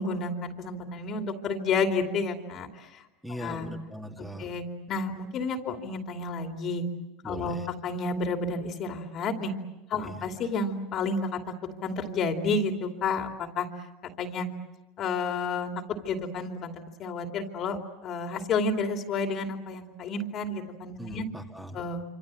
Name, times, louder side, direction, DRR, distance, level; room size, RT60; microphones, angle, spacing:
voice 1, 0.0-2.7 3.3-3.7 4.2-6.8 7.2-9.5 9.9-11.4 11.8-13.7 14.2-14.5 15.0-15.7 16.0-16.7 17.0-21.2 21.7-22.0, left 3 dB, 40° left, 5 dB, 2.7 m, -30 dB
voice 2, 3.2-4.5 7.2-7.7 10.0-10.2 21.0-21.8, right 1 dB, 5° right, 2 dB, 2.5 m, -40 dB
26.5 x 26.0 x 7.7 m, 1.0 s
supercardioid pair, 130°, 0 cm